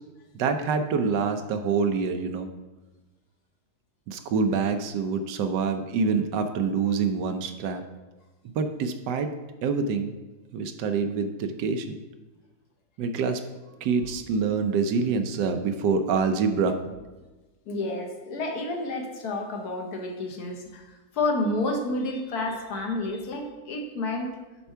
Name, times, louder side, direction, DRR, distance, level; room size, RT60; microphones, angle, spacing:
voice 1, 0.3-2.5 4.1-7.8 8.5-9.3 9.6-10.2 10.5-12.0 13.0-13.4 13.8-16.8, right 5 dB, 90° right, 7 dB, 1.3 m, -26 dB
voice 2, 17.7-24.3, left 2 dB, 70° left, 2 dB, 1.5 m, -30 dB
6.8 x 4.5 x 5.5 m, 1.2 s
omnidirectional pair, 1.8 m